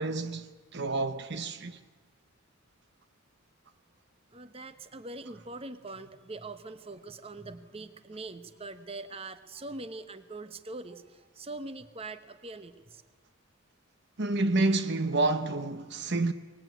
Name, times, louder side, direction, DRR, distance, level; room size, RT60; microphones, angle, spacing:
voice 1, 0.0-1.8 14.2-16.3, right 2 dB, 50° right, 0.9 m, -29 dB
voice 2, 4.3-13.0, right 2 dB, 25° right, 1.0 m, -43 dB
23.5 x 21.0 x 9.2 m
head